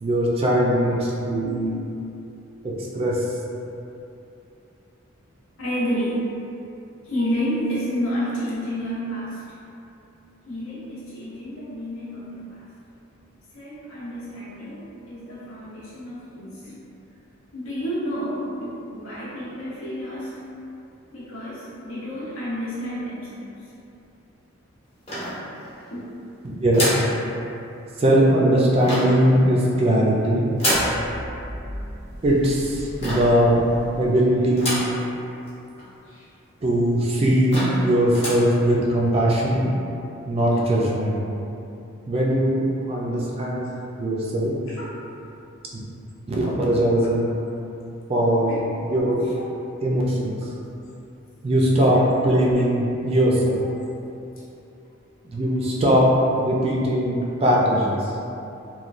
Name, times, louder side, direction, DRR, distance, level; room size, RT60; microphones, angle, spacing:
voice 1, 0.0-1.6 2.6-3.2 26.6-26.9 28.0-30.5 32.2-33.7 34.0-34.8 36.6-39.7 40.3-41.2 42.1-43.7 44.0-44.6 46.3-47.3 48.1-48.6 48.8-49.2 49.8-50.4 51.4-53.6 55.2-56.1 56.4-57.9, right 1 dB, 30° right, -4 dB, 0.3 m, -20 dB
voice 2, 1.4-1.7 5.6-6.2 7.0-9.4 10.4-12.7 13.5-16.8 17.5-20.3 21.1-23.5 25.9-26.1 36.1-36.3 37.8-37.9 44.7-44.9 48.5-48.6 51.9-52.0 53.6-53.7 57.7-57.8, equal, 80° left, -8 dB, 0.8 m, -30 dB
sound 1, 25.1-25.8 26.7-27.1 28.8-29.3 30.6-31.0 33.0-33.4 34.6-35.0 35.5-35.6 35.8-35.9 36.6-36.7 37.1-37.2 37.5-37.8 38.1-38.5, equal, 30° left, 0.7 m, -26 dB
sound 2, 30.7-34.9, equal, 80° right, 0.5 m, -37 dB
3.0 x 2.2 x 2.5 m, 2.7 s
head